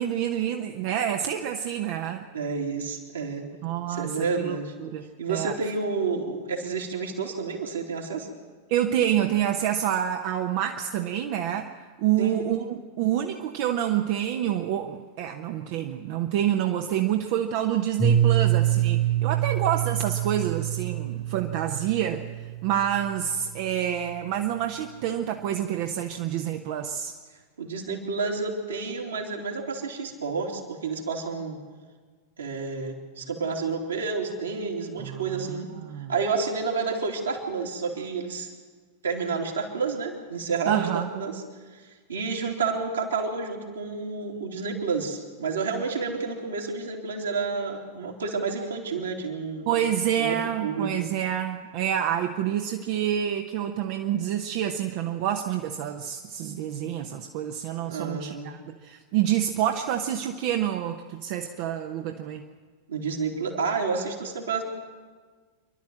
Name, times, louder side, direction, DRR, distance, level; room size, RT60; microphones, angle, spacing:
voice 1, 0.0-2.3 3.6-5.5 8.7-11.7 12.0-22.3 22.6-27.1 35.0-36.1 40.7-41.1 49.7-62.4, right 10 dB, 45° right, 4 dB, 1.0 m, -28 dB
voice 2, 2.3-3.4 3.9-4.7 5.2-8.3 12.2-12.5 27.6-31.6 32.4-35.7 36.1-38.5 39.0-41.4 42.1-49.7 50.2-50.9 57.8-58.5 62.9-64.6, right 4 dB, 70° right, -1 dB, 3.1 m, -30 dB
Piano, 18.0-23.6, right 11 dB, 5° left, 1.2 m, -26 dB
28.0 x 12.0 x 7.7 m, 1.5 s
figure-of-eight pair, 90°, 0 cm